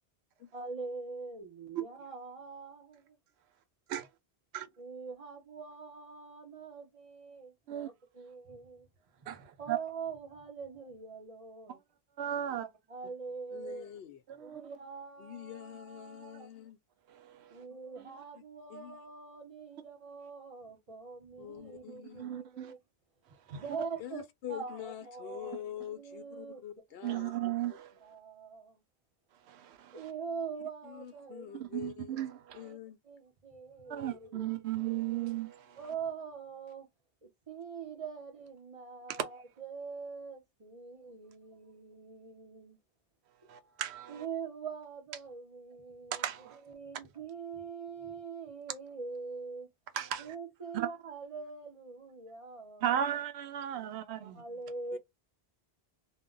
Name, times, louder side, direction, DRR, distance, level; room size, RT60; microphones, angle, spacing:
voice 1, 0.5-3.2 4.8-8.9 9.3-11.8 12.5-13.9 14.4-16.5 17.5-22.8 23.3-24.2 24.5-25.6 25.9-26.6 28.0-28.8 29.9-31.5 32.6-32.8 33.0-34.6 35.8-36.9 37.2-42.8 44.1-46.3 46.7-49.7 50.2-53.0 53.7-55.0, right 5 dB, 35° right, 0.8 m, -44 dB
voice 2, 9.3-9.8 12.2-12.7 14.3-14.7 17.1-17.7 18.0-18.1 22.0-22.7 23.5-23.9 27.0-27.9 29.4-30.1 31.5-32.7 33.9-35.8 39.1-39.2 43.5-44.3 46.1-46.6 49.9-50.3 50.7-50.9 52.8-54.4, right 11 dB, 85° right, 0.8 m, -36 dB
voice 3, 13.5-14.2 14.5-14.6 15.2-16.8 18.7-19.0 21.4-22.3 24.0-27.3 30.8-32.3 32.5-33.0 34.1-34.2 54.9-55.0, left 11 dB, 70° left, 0.8 m, -45 dB
2.2 x 2.1 x 3.7 m
omnidirectional pair, 1.1 m